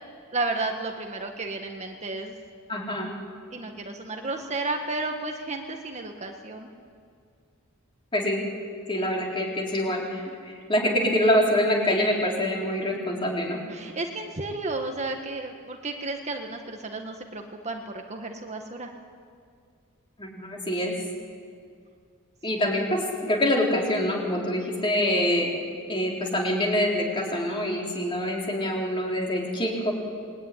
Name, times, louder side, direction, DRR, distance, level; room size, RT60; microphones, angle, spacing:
voice 1, 0.3-2.4 3.5-6.7 13.7-18.9, right 2 dB, 30° right, 3 dB, 1.6 m, -32 dB
voice 2, 2.7-3.1 8.1-8.4 8.9-13.6 20.2-20.9 22.4-25.6 25.9-29.9, left 1 dB, 20° left, -1 dB, 4.2 m, -25 dB
27.5 x 21.0 x 9.9 m, 2.2 s
head